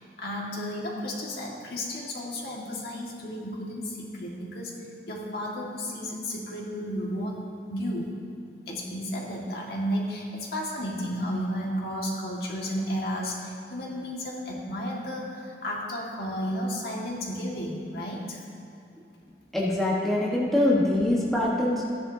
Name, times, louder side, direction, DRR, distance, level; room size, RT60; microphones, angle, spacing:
voice 1, 0.0-4.7 5.1-7.4 7.7-8.1 8.7-18.4, equal, 60° left, -3 dB, 1.9 m, -33 dB
voice 2, 19.5-21.8, left 1 dB, ahead, -6 dB, 1.2 m, -24 dB
15.0 x 10.5 x 2.8 m, 2.6 s
head